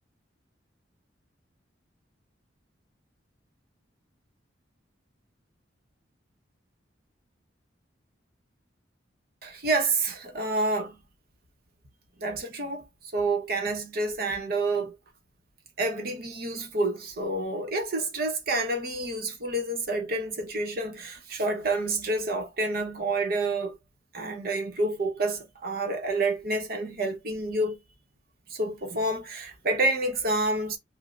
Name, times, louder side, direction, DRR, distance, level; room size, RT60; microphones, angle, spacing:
voice 1, 9.4-11.0 12.2-12.8 13.1-14.9 15.8-23.8 24.1-27.8 28.5-30.8, right 2 dB, 50° right, 0.9 m, -28 dB
5.0 x 2.1 x 2.4 m
head